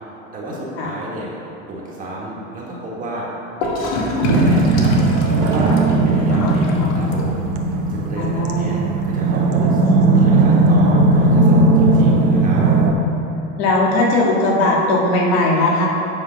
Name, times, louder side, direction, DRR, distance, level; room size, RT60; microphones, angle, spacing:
voice 1, 0.3-1.3 1.7-3.3 3.6-5.1 5.4-7.4 7.7-8.8 9.0-12.6, right 2 dB, 25° right, -5 dB, 1.5 m, -31 dB
Gurgling / Toilet flush, 3.6-7.6, left 2 dB, 65° left, 1.2 m, -25 dB
sound 1, 4.2-12.9, right 2 dB, 75° right, 1.0 m, -16 dB
voice 2, 8.2-8.7 13.6-15.9, left 2 dB, 80° left, -3 dB, 1.9 m, -18 dB
8.5 x 5.0 x 5.2 m, 3.0 s
cardioid pair, 170°, 32 cm